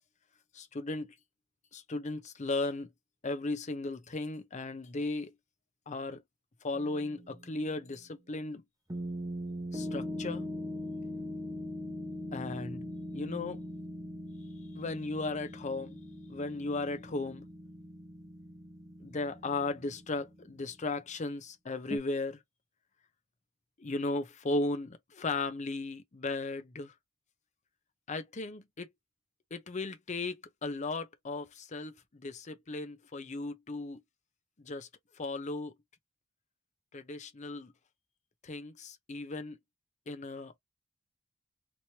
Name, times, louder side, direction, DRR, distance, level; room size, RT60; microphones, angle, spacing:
voice 1, 0.5-1.1 1.7-2.9 3.2-5.3 5.9-6.2 6.6-8.6 9.7-10.4 12.3-12.9 13.1-13.6 14.7-16.0 16.3-17.5 19.0-22.4 23.8-26.9 28.1-28.9 29.5-34.0 34.6-34.9 35.2-35.7 36.9-37.7 38.4-39.6 40.1-40.6, left 2 dB, 35° left, 0.6 m, -36 dB
sound 1, 6.7-7.7 8.9-20.6 21.9-22.0, left 1 dB, 15° right, 0.9 m, -41 dB
3.1 x 3.0 x 2.7 m
head